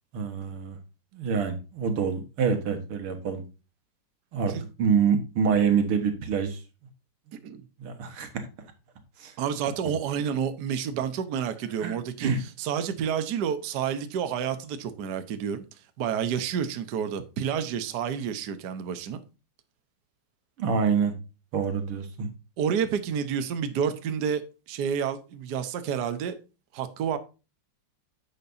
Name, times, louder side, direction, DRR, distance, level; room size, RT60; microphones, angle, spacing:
voice 1, 0.1-0.8 1.1-3.4 4.3-4.5 4.8-6.6 7.8-8.5 9.2-9.3 9.8-9.9 11.8-12.4 20.6-21.1 21.5-22.3, right 6 dB, 90° right, 2.4 m, -26 dB
voice 2, 7.3-7.6 9.4-12.3 12.6-15.6 16.0-19.2 22.6-24.4 24.7-26.3 26.7-27.2, right 8 dB, 60° right, 1.4 m, -29 dB
10.5 x 7.5 x 2.7 m
omnidirectional pair, 2.3 m